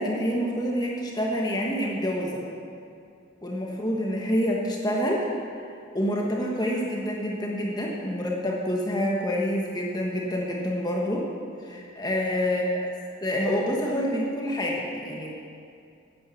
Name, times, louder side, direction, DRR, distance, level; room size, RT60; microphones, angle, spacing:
voice 1, 0.0-2.4 3.4-5.2 5.9-11.3 11.6-12.6 13.2-15.3, equal, 20° left, -2 dB, 1.2 m, -27 dB
10.0 x 8.8 x 7.0 m, 2.5 s
head